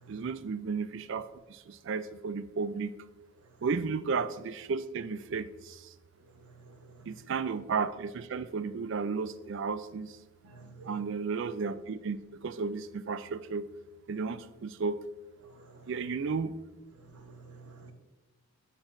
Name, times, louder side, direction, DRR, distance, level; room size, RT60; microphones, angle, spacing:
voice 1, 0.1-2.9 3.6-5.9 7.1-10.2 10.8-13.7 14.1-15.0 15.9-16.6, right 5 dB, 55° right, 13 dB, 0.3 m, -33 dB
voice 2, 6.4-7.1 10.4-11.0 15.5-15.9 17.0-17.9, right 3 dB, 85° right, 4 dB, 1.1 m, -52 dB
12.5 x 4.4 x 2.6 m, 1.1 s
head